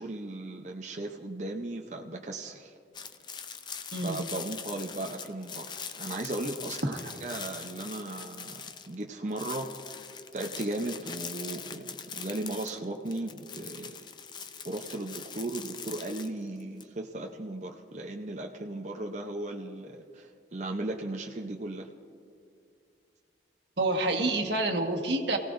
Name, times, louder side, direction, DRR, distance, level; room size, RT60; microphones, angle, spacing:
voice 1, 0.0-2.7 3.9-9.7 10.3-14.0 14.6-21.9, right 2 dB, 40° right, 1 dB, 0.7 m, -36 dB
sound 1, 2.9-9.0 9.3-16.8, left 6 dB, 25° left, 0.5 m, -42 dB
voice 2, 23.8-25.4, right 2 dB, 85° right, 2 dB, 1.5 m, -28 dB
27.0 x 17.0 x 2.6 m, 2.4 s
head